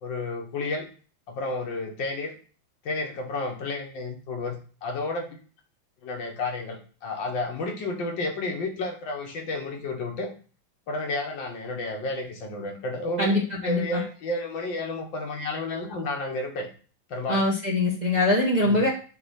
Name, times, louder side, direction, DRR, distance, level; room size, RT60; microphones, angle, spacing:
voice 1, 0.0-0.9 1.3-2.4 2.9-5.4 6.0-10.3 10.9-16.7 17.1-17.5 18.7-18.9, left 2 dB, 70° left, 3 dB, 1.9 m, -31 dB
voice 2, 13.2-14.0 17.3-18.9, left 2 dB, 25° right, -4 dB, 1.2 m, -23 dB
6.9 x 3.0 x 5.6 m, 0.38 s
omnidirectional pair, 2.1 m